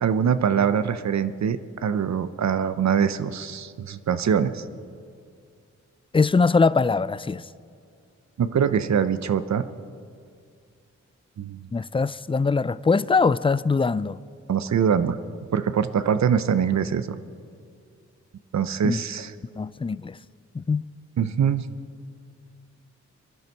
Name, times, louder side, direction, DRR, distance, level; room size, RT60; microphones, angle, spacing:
voice 1, 0.0-4.6 8.4-9.6 11.4-11.7 14.5-15.2 15.5-17.2 18.5-19.3 21.2-21.7, right 7 dB, 65° right, 0.6 m, -23 dB
voice 2, 6.1-7.4 11.7-14.2 18.8-19.0 19.6-20.2 20.5-20.8, left 4 dB, 20° left, 0.3 m, -22 dB
22.0 x 11.0 x 4.5 m
cardioid pair, 60°, 30 cm